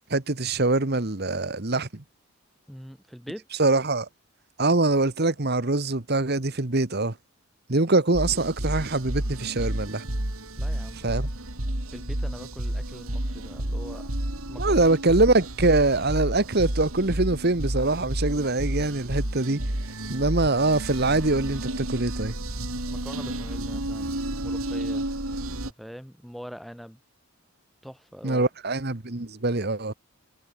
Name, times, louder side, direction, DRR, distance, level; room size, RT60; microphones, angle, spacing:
voice 1, 0.0-2.0 3.6-4.1 4.6-7.1 7.7-10.1 11.0-11.3 14.6-19.6 20.1-22.3 28.2-29.9, right 2 dB, 50° right, 1.5 m, -23 dB
voice 2, 2.7-3.5 10.5-11.2 11.9-14.1 14.5-14.9 22.8-25.1 25.8-27.0 27.8-28.5, equal, ahead, 3.7 m, -43 dB
sound 1, 8.1-25.7, right 1 dB, 80° right, 3.8 m, -31 dB
head